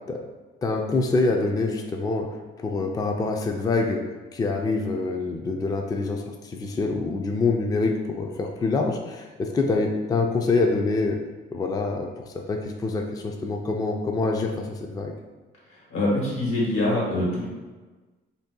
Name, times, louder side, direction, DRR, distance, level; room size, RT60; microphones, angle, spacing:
voice 1, 0.6-4.0 4.3-11.2 11.5-15.1, left 3 dB, 20° left, 2 dB, 0.3 m, -26 dB
voice 2, 15.7-17.5, left 1 dB, 90° left, -5 dB, 1.3 m, -24 dB
2.7 x 2.3 x 3.6 m, 1.3 s
cardioid pair, 90°, 20 cm